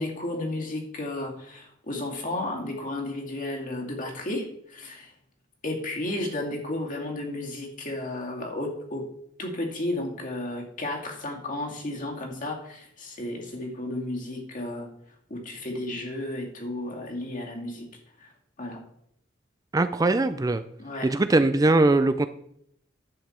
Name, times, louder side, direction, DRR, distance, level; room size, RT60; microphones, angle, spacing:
voice 1, 0.0-5.1 5.6-9.1 9.4-14.9 15.3-17.9 18.2-18.3 18.6-18.8 20.8-21.1, left 1 dB, 40° left, 1 dB, 2.2 m, -33 dB
voice 2, 19.7-20.6 21.0-22.3, right 2 dB, 20° right, 11 dB, 0.4 m, -21 dB
10.5 x 8.1 x 4.3 m, 0.73 s
head